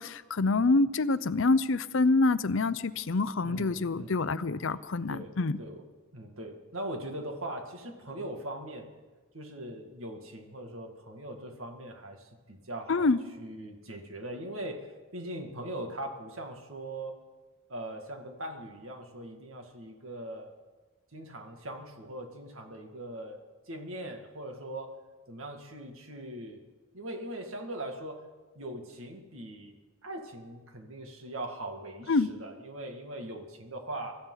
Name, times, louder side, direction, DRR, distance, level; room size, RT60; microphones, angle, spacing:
voice 1, 0.0-5.6 12.9-13.2 32.1-32.3, left 3 dB, 60° left, 15 dB, 0.6 m, -26 dB
voice 2, 3.4-4.4 5.1-5.8 6.1-8.9 9.3-13.1 13.4-14.8 15.1-17.2 17.7-20.5 21.1-23.4 23.7-24.9 25.3-26.6 26.9-28.2 28.6-34.2, right 1 dB, 70° right, 3 dB, 2.2 m, -41 dB
24.5 x 14.0 x 4.0 m, 1.3 s
head